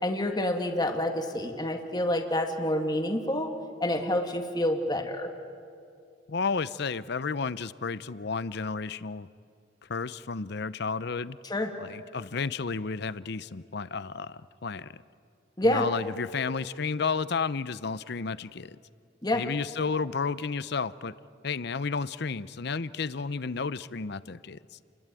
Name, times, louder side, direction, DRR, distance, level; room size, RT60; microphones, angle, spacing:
voice 1, 0.0-3.5 3.8-5.3 11.4-11.7 15.6-15.9 19.2-19.4, left 1 dB, 20° left, 5 dB, 1.9 m, -28 dB
voice 2, 6.3-9.3 9.9-11.4 11.8-15.0 15.6-18.8 19.3-21.1 21.4-24.6, left 5 dB, 60° left, 17 dB, 0.7 m, -32 dB
29.5 x 21.5 x 9.1 m, 2.4 s
head